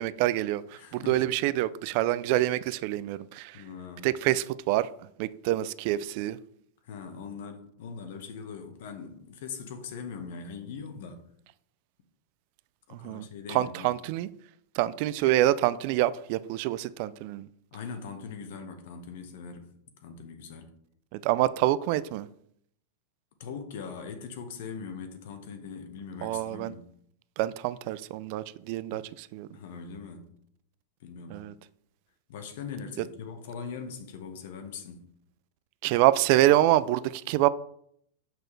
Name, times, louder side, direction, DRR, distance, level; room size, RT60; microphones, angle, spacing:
voice 1, 0.0-3.6 4.0-4.9 5.2-6.4 12.9-14.3 14.7-17.5 21.1-22.3 26.2-26.7 27.4-29.5 31.3-31.5 35.8-37.5, right 15 dB, 45° right, 0.3 m, -26 dB
voice 2, 0.8-1.3 3.5-4.1 6.8-11.2 12.9-13.9 17.7-19.7 20.0-20.7 23.4-26.9 28.9-29.1 29.5-30.3 31.0-31.4 32.3-35.1, left 5 dB, 65° left, 1.2 m, -41 dB
6.7 x 6.1 x 3.2 m
supercardioid pair, 155°, 0 cm